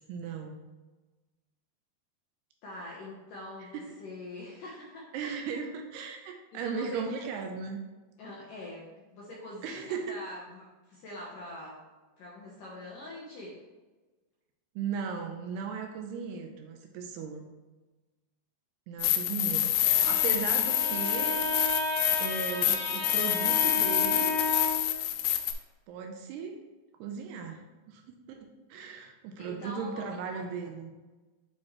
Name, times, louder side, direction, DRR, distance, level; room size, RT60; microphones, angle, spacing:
voice 1, 0.1-0.6 3.6-3.8 5.1-7.8 9.6-10.2 14.8-17.5 18.9-21.4 22.2-24.4 25.9-26.6 27.0-30.9, right 6 dB, 80° right, 4 dB, 2.5 m, -37 dB
voice 2, 2.6-5.1 6.5-7.1 8.2-8.9 9.1-11.8 12.2-13.6 29.4-30.1, left 1 dB, 70° left, -4 dB, 2.0 m, -44 dB
sound 1, 19.0-25.5, left 12 dB, 90° left, 2.2 m, -27 dB
Bowed string instrument, 19.6-24.9, left 1 dB, 45° right, 2.1 m, -33 dB
8.7 x 4.4 x 3.2 m, 1.2 s
omnidirectional pair, 5.1 m